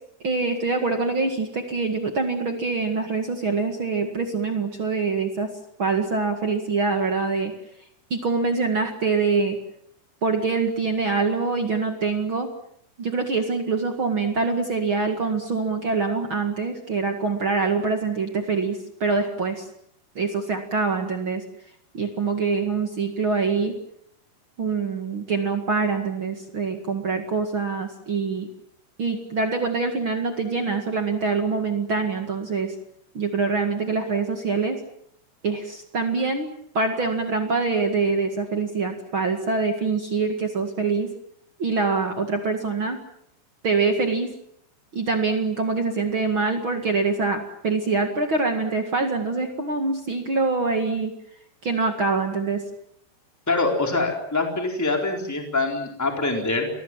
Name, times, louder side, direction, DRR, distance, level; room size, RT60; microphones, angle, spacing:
voice 1, 0.2-5.5 5.8-7.5 8.1-9.6 10.2-12.5 13.0-19.7 20.1-21.4 21.9-23.7 24.6-28.5 29.0-32.7 33.1-34.8 35.4-41.1 41.6-43.0 43.6-44.3 44.9-51.1 51.6-52.6, right 4 dB, 50° right, 5 dB, 1.5 m, -24 dB
voice 2, 53.5-56.7, left 3 dB, 5° left, 3 dB, 3.3 m, -24 dB
28.5 x 21.0 x 7.5 m, 0.70 s
omnidirectional pair, 5.4 m